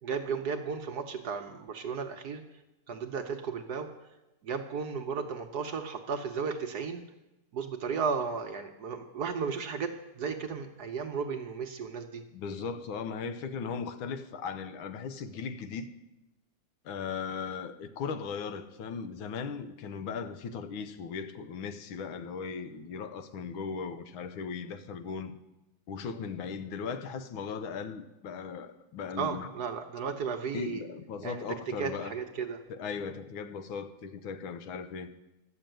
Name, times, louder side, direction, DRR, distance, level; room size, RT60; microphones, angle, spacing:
voice 1, 0.0-2.4 2.9-3.9 4.4-7.0 7.5-12.2 29.2-30.8 31.2-31.4 31.8-32.6, right 5 dB, 60° right, 1.2 m, -34 dB
voice 2, 12.3-15.9 16.8-25.4 25.9-29.5 30.5-32.1 32.7-35.1, left 5 dB, 75° left, 1.6 m, -37 dB
13.0 x 6.9 x 9.0 m
omnidirectional pair, 2.3 m